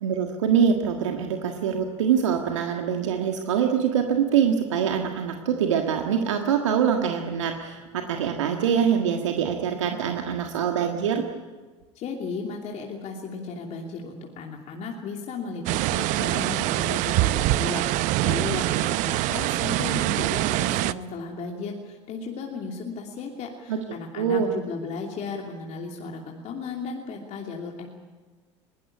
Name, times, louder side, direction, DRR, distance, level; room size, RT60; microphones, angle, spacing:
voice 1, 0.0-11.3 23.7-23.8 24.2-24.5, right 7 dB, 80° right, 3 dB, 1.6 m, -24 dB
voice 2, 11.9-27.9, left 4 dB, 45° left, 0 dB, 2.8 m, -35 dB
sound 1, 15.7-20.9, right 18 dB, 55° right, 0.7 m, -24 dB
21.5 x 18.0 x 9.9 m, 1.3 s
hypercardioid pair, 75°, 15 cm